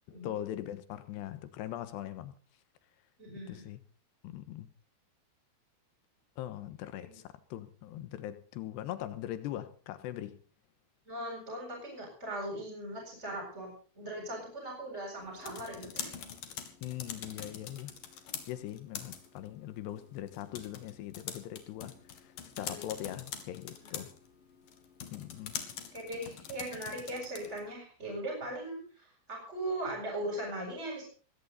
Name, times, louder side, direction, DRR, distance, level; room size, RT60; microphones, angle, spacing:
voice 1, 0.1-2.3 3.5-3.8 4.2-4.7 6.4-10.4 16.8-18.0 18.5-24.1 25.1-25.5, left 12 dB, 85° left, 3.3 m, -41 dB
voice 2, 3.2-3.7 7.0-7.2 11.1-16.1 22.6-22.8 23.8-24.0 25.9-31.1, right 1 dB, 15° right, 8.1 m, -39 dB
sound 1, 15.2-27.7, left 8 dB, 60° left, 3.5 m, -45 dB
20.5 x 16.0 x 4.1 m
omnidirectional pair, 4.8 m